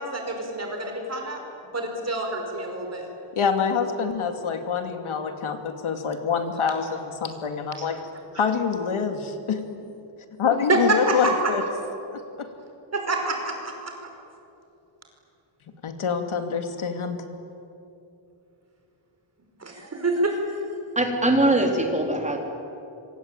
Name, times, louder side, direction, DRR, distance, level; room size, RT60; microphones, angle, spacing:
voice 1, 0.0-1.4 1.7-3.1 7.8-7.9 10.7-11.5 12.9-13.7 19.6-20.4, right 2 dB, 30° right, 3 dB, 5.3 m, -26 dB
voice 2, 3.3-8.0 8.3-9.6 10.4-11.6 12.1-12.5 15.8-17.2, left 6 dB, 75° left, 6 dB, 2.6 m, -26 dB
voice 3, 21.0-22.4, right 1 dB, 15° right, 2 dB, 3.9 m, -21 dB
26.0 x 25.5 x 9.0 m, 2.7 s
wide cardioid pair, 150°, 49 cm